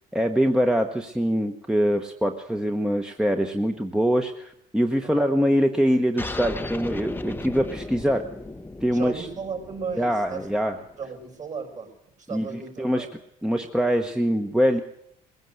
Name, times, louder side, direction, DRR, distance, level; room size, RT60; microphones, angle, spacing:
voice 1, 0.1-8.2 8.8-9.3 9.9-10.7 12.3-12.5 12.8-13.1 13.4-14.8, equal, 5° right, 5 dB, 1.1 m, -23 dB
sound 1, 6.2-11.2, left 2 dB, 10° left, 0.8 m, -36 dB
voice 2, 8.9-10.5 11.0-11.9 12.2-13.1, right 5 dB, 45° right, 4 dB, 5.4 m, -35 dB
20.5 x 16.0 x 7.9 m, 0.74 s
cardioid pair, 110°, 17 cm